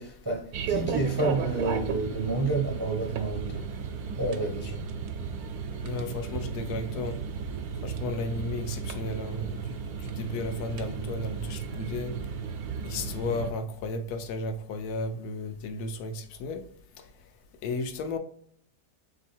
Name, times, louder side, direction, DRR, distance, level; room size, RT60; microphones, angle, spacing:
voice 1, 0.0-3.7 4.2-4.9, right 2 dB, 30° right, 0.4 m, -30 dB
sound 1, 0.5-13.5, right 6 dB, 75° right, 1.1 m, -34 dB
voice 2, 5.8-7.2 7.8-12.1 12.8-16.6 17.0-17.1 17.6-18.2, left 2 dB, 85° left, 1.1 m, -34 dB
3.4 x 3.1 x 4.3 m
omnidirectional pair, 1.7 m